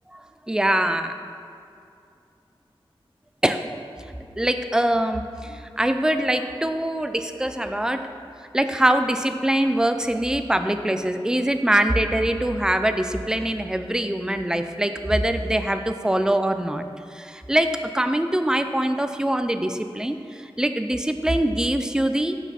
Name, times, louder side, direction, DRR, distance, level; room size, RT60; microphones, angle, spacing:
voice 1, 0.5-1.1 3.4-3.7 4.4-8.1 8.5-16.8 17.1-22.3, right 1 dB, 5° right, 8 dB, 0.3 m, -23 dB
5.8 x 5.8 x 4.2 m, 2.5 s
wide cardioid pair, 80°, 10 cm